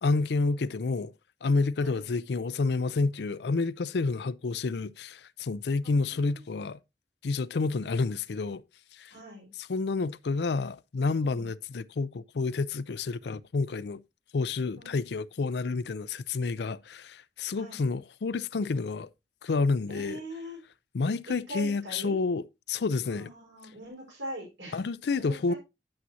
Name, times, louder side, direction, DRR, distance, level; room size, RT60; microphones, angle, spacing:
voice 1, 0.0-1.1 1.4-6.8 7.2-8.6 8.9-9.1 9.7-14.0 14.3-19.1 19.4-20.2 20.9-23.3 24.7-25.5, left 3 dB, 65° left, 0.5 m, -29 dB
voice 2, 5.8-6.4 9.1-9.5 11.2-11.5 14.8-15.0 17.5-17.8 19.9-20.6 21.3-22.2 23.0-24.8 25.2-25.6, equal, 80° right, 4.8 m, -42 dB
9.4 x 8.8 x 2.8 m
head